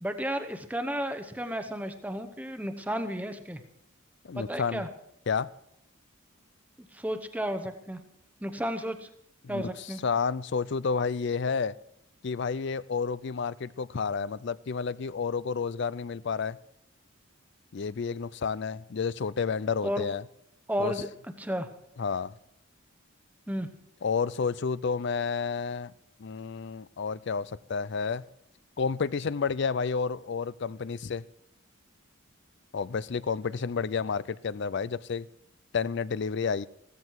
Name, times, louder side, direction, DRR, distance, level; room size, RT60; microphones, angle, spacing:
voice 1, 0.0-3.6 4.3-4.9 6.9-8.0 8.4-9.1 9.5-10.0 19.8-20.0 20.7-21.1 21.4-21.7 23.5-23.7, equal, 5° right, 0.9 m, -32 dB
voice 2, 4.2-4.8 5.3-5.5 9.4-11.8 12.2-16.6 17.7-20.2 20.8-20.9 22.0-22.3 24.0-25.9 26.2-28.3 28.8-31.2 32.7-35.3 35.7-36.7, left 5 dB, 55° left, 0.4 m, -30 dB
16.0 x 13.5 x 4.7 m
head